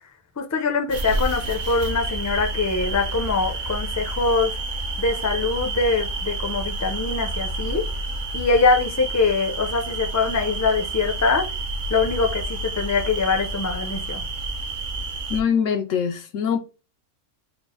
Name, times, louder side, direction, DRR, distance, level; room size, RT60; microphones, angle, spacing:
voice 1, 0.4-4.5 5.0-7.8 8.3-11.5 11.9-14.2, left 4 dB, 20° left, 0.4 m, -23 dB
sound 1, 0.9-15.4, right 2 dB, 55° right, 0.5 m, -29 dB
voice 2, 15.3-16.6, left 7 dB, 80° left, 1.0 m, -23 dB
4.5 x 2.1 x 3.7 m
omnidirectional pair, 1.3 m